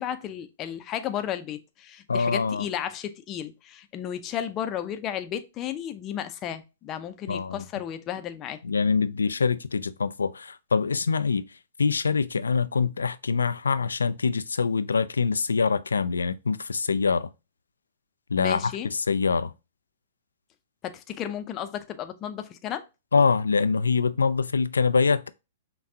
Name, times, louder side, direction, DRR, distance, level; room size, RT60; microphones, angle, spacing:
voice 1, 0.0-8.6 18.4-18.9 20.8-22.8, left 10 dB, 30° left, 0.6 m, -33 dB
voice 2, 2.1-2.7 7.3-7.6 8.6-11.4 11.8-17.3 18.3-19.5 23.1-25.3, left 5 dB, 90° left, 0.3 m, -24 dB
5.8 x 2.3 x 2.7 m
hypercardioid pair, 120°, 0 cm